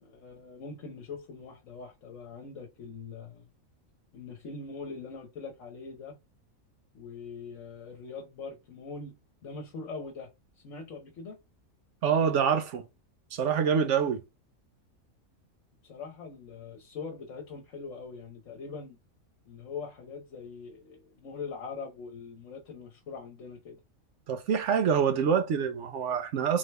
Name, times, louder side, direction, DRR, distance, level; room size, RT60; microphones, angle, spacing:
voice 1, 0.0-3.5 4.1-6.2 6.9-9.1 9.4-10.3 10.6-11.4 15.8-19.0 19.5-23.8, left 4 dB, 65° left, 1.2 m, -42 dB
voice 2, 12.0-12.8 13.3-14.2 24.3-26.6, right 7 dB, 65° right, 0.9 m, -26 dB
3.6 x 3.2 x 3.3 m
omnidirectional pair, 1.5 m